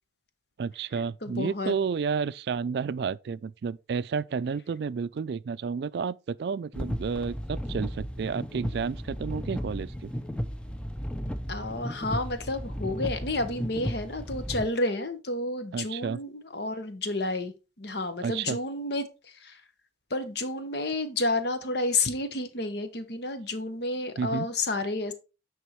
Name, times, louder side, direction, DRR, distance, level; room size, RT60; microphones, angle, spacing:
voice 1, 0.6-10.1 15.7-16.2 18.2-18.6 24.2-24.5, right 5 dB, 60° right, 0.3 m, -31 dB
voice 2, 1.2-1.8 11.5-19.6 20.1-25.1, left 2 dB, 60° left, 1.1 m, -30 dB
sound 1, 6.7-14.7, equal, 5° left, 0.5 m, -34 dB
9.3 x 3.6 x 4.5 m
head